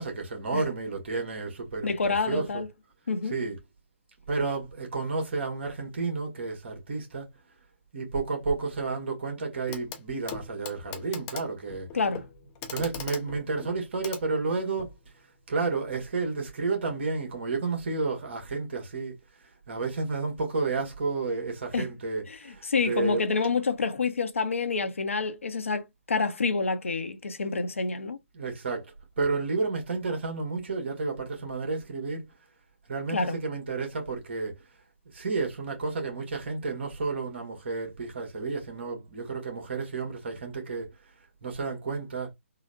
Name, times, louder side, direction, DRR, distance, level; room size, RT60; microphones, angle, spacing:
voice 1, 0.0-1.9 2.3-2.6 3.2-3.6 4.3-7.3 7.9-11.9 12.7-15.0 15.5-19.1 19.4-23.2 28.3-32.3 32.9-34.6 35.1-40.9 41.4-42.3, right 4 dB, 55° right, 1.5 m, -31 dB
voice 2, 1.8-2.7 3.1-3.3 11.9-12.3 21.7-21.9 22.3-22.4 22.6-28.2 33.1-33.4, left 4 dB, 75° left, 0.7 m, -28 dB
Clock, 9.7-10.0 10.3-15.0 16.2-16.3, left 7 dB, 20° left, 0.5 m, -41 dB
3.8 x 2.1 x 2.3 m
figure-of-eight pair, 140°, 7 cm